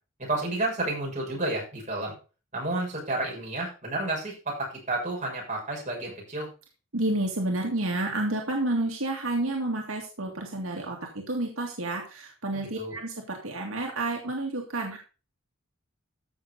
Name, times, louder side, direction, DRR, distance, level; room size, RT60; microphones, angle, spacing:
voice 1, 0.2-2.1 2.5-6.5 12.5-13.0, right 2 dB, 35° right, -3 dB, 6.9 m, -31 dB
voice 2, 6.9-15.0, right 2 dB, 80° right, 0 dB, 2.2 m, -30 dB
15.0 x 6.6 x 4.1 m, 0.34 s
head